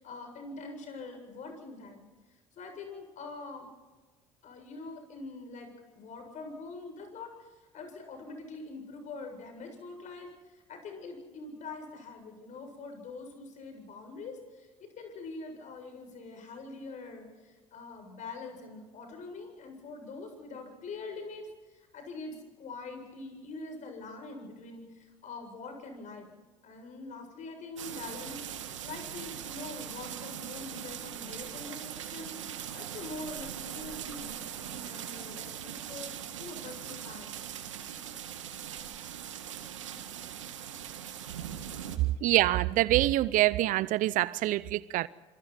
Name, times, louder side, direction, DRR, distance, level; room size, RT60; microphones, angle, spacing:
voice 1, 0.0-2.1 2.6-3.7 4.4-26.3 26.6-34.3 34.6-36.1 36.4-37.4, left 3 dB, 50° left, 7.7 m, -44 dB
sound 1, 27.8-42.0, right 9 dB, 85° right, 1.8 m, -41 dB
voice 2, 42.2-45.1, right 16 dB, 60° right, 0.7 m, -25 dB
27.0 x 25.5 x 4.4 m
hypercardioid pair, 60°, 16 cm